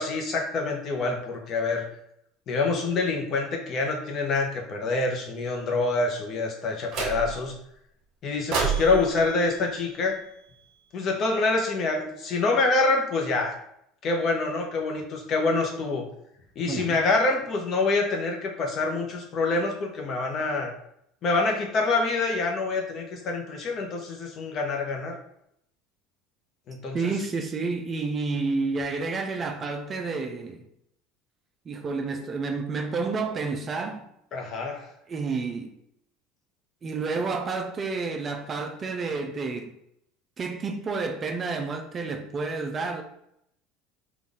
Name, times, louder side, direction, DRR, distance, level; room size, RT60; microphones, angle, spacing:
voice 1, 0.0-1.8 2.5-7.5 8.2-10.2 10.9-13.6 14.0-16.1 16.6-20.7 21.2-25.2 26.7-27.1 34.3-34.9, left 3 dB, 40° left, 0.8 m, -26 dB
sound 1, 6.9-7.6 8.5-10.7, right 5 dB, 55° right, 1.2 m, -31 dB
voice 2, 16.6-17.0 26.9-30.6 31.7-34.0 35.1-35.7 36.8-39.7 40.4-43.0, right 4 dB, 30° right, 0.4 m, -30 dB
3.9 x 2.5 x 3.5 m
supercardioid pair, 125°, 0 cm